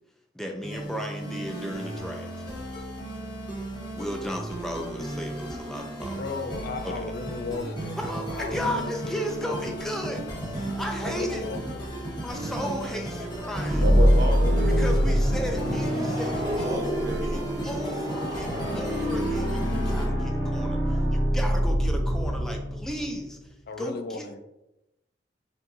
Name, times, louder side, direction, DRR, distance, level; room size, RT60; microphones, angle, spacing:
voice 1, 0.3-2.4 4.0-6.2 6.8-7.1 8.0-11.4 12.2-13.9 14.8-24.2, equal, 5° left, 2 dB, 0.5 m, -35 dB
sound 1, 0.6-20.1, right 1 dB, 25° left, 1.0 m, -34 dB
voice 2, 6.2-9.7 11.0-11.9 14.2-15.1 23.7-24.4, left 3 dB, 55° left, 7 dB, 0.4 m, -36 dB
sound 2, 13.6-23.3, equal, 25° right, 1.4 m, -25 dB
voice 3, 13.8-14.9 16.6-17.6, right 1 dB, 60° right, 6 dB, 0.5 m, -32 dB
5.2 x 2.6 x 2.7 m, 0.91 s
head